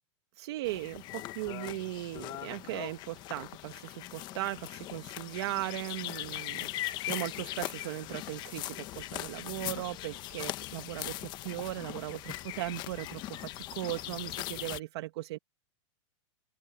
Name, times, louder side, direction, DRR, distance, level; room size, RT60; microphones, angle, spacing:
voice 1, 0.4-15.4, right 17 dB, 55° right, 1.3 m, -38 dB
sound 1, 0.6-14.8, left 15 dB, 25° left, 0.9 m, -40 dB
open air
supercardioid pair, 165°, 16 cm